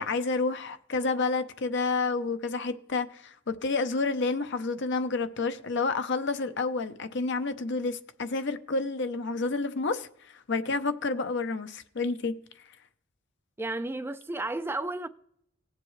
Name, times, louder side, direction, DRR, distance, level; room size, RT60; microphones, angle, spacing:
voice 1, 0.0-12.3, left 3 dB, 55° left, 0.8 m, -29 dB
voice 2, 13.6-15.1, right 2 dB, 10° right, 0.4 m, -32 dB
18.5 x 7.5 x 3.2 m
head